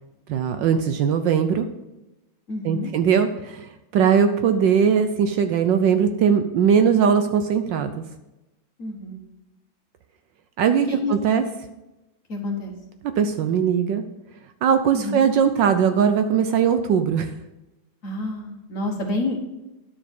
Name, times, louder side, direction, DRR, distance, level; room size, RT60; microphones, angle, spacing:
voice 1, 0.3-1.7 2.6-8.0 10.6-11.4 13.2-14.0 14.6-17.3, right 7 dB, 70° right, 8 dB, 1.2 m, -20 dB
voice 2, 2.5-2.9 8.8-9.2 10.9-11.1 12.3-12.7 14.9-15.2 18.0-19.4, left 3 dB, 40° left, 2 dB, 1.7 m, -28 dB
10.5 x 6.9 x 5.3 m, 0.98 s
omnidirectional pair, 2.2 m